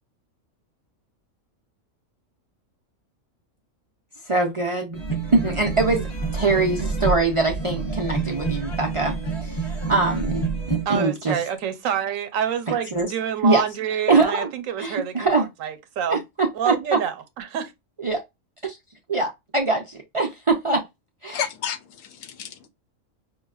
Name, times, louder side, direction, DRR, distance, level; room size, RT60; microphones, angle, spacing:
voice 1, 4.3-5.0 5.3-6.1 6.3-11.4 12.9-13.1 13.4-13.6 14.1-14.5 14.8-15.5 16.1-17.0 18.0-18.2 18.6-18.8 19.1-20.8 21.2-21.4, right 3 dB, 50° right, 0.3 m, -23 dB
sound 1, 4.9-10.9, right 4 dB, 25° left, 0.9 m, -28 dB
voice 2, 10.9-16.2 16.5-17.7, right 9 dB, 90° right, 1.0 m, -27 dB
voice 3, 21.3-22.7, left 8 dB, 85° left, 1.0 m, -31 dB
5.3 x 2.2 x 2.3 m
omnidirectional pair, 1.3 m